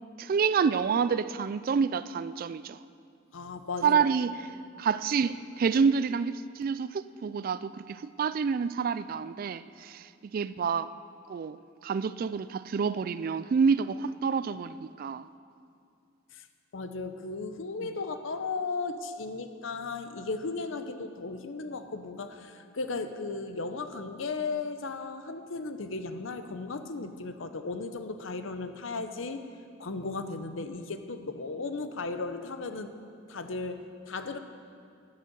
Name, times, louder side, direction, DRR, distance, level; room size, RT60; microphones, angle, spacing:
voice 1, 0.2-2.8 3.8-4.3 4.8-10.9 11.3-11.6 11.8-15.2 17.8-17.9, right 6 dB, 45° right, 15 dB, 0.3 m, -28 dB
voice 2, 3.3-4.0 16.3-16.4 16.7-29.4 29.8-32.9 33.3-34.4, left 3 dB, 70° left, 9 dB, 0.7 m, -36 dB
10.0 x 9.9 x 6.9 m, 2.4 s
head